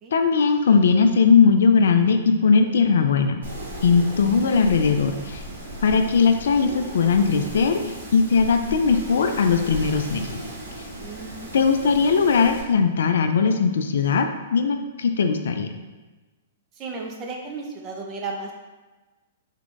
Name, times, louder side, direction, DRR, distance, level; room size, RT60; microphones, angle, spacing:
voice 1, 0.1-3.4 3.8-5.4 5.8-7.8 8.1-10.3 11.5-14.3 14.5-15.7, left 5 dB, 70° left, 6 dB, 0.3 m, -19 dB
Wind, 3.4-12.6, right 1 dB, 70° right, 1.1 m, -36 dB
voice 2, 11.0-11.6 16.7-18.5, right 3 dB, 30° right, 1 dB, 0.6 m, -34 dB
3.5 x 2.3 x 3.7 m, 1.2 s
hypercardioid pair, 120°, 0 cm